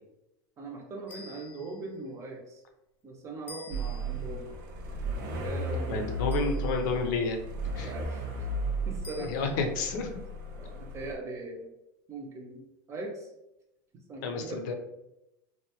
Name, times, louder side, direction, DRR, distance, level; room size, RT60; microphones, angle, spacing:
voice 1, 0.6-2.6 3.0-4.5 5.3-6.3 7.8-8.2 8.9-9.4 10.6-11.7 12.1-12.6 12.9-13.3 14.1-14.6, right 2 dB, 30° right, 1 dB, 0.6 m, -40 dB
sound 1, 1.1-2.0 3.5-4.3 6.3-7.0 9.0-9.7, left 3 dB, 20° left, 0.5 m, -49 dB
sound 2, 3.7-11.1, right 2 dB, 75° right, 0.6 m, -35 dB
voice 2, 5.9-7.4 7.8-7.9 9.3-10.1 14.2-14.7, left 4 dB, 70° left, 5 dB, 0.5 m, -30 dB
2.7 x 2.2 x 2.8 m, 0.87 s
supercardioid pair, 125°, 10 cm